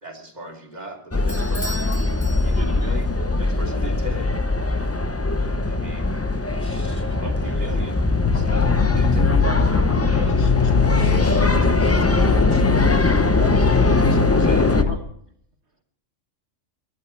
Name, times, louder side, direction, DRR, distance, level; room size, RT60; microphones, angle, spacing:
voice 1, 0.0-1.9 2.4-4.4 5.4-6.1 6.6-9.4 10.1-10.4 11.0-11.5 11.9-12.0 12.4-12.6 14.3-14.9, right 1 dB, 35° right, 1 dB, 2.9 m, -37 dB
sound 1, 1.1-14.8, left 2 dB, 15° left, 0.6 m, -21 dB
Bell / Doorbell, 1.3-3.0, equal, 35° left, 2.1 m, -37 dB
sound 2, 8.2-15.0, left 7 dB, 75° left, 1.3 m, -23 dB
voice 2, 10.4-13.2 14.1-14.2, left 5 dB, 50° left, 10 dB, 0.8 m, -33 dB
voice 3, 14.7-15.0, equal, 60° right, 5 dB, 1.9 m, -35 dB
22.0 x 11.0 x 4.5 m, 0.66 s
omnidirectional pair, 1.3 m